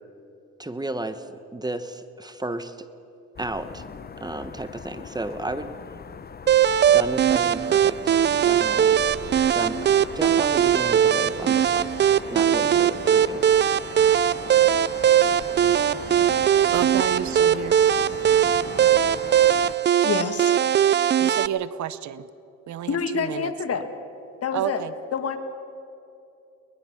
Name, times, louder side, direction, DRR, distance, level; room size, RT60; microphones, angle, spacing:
voice 1, 0.6-2.9 3.4-3.8 4.2-5.8 6.9-8.1 8.4-9.0 9.5-11.9 12.3-13.4, right 2 dB, 15° right, 11 dB, 1.1 m, -33 dB
sound 1, 3.4-19.8, left 6 dB, 30° left, 0.8 m, -39 dB
sound 2, 6.5-21.5, right 9 dB, 35° right, 0.4 m, -20 dB
voice 2, 16.7-17.8 21.2-22.3 22.7-23.8 24.5-24.9, right 10 dB, 70° right, 16 dB, 0.8 m, -30 dB
voice 3, 20.0-20.6 22.9-23.9 24.4-24.8 25.1-25.4, left 6 dB, 50° left, 8 dB, 1.9 m, -27 dB
22.5 x 20.5 x 5.9 m, 2.7 s
cardioid pair, 90°, 30 cm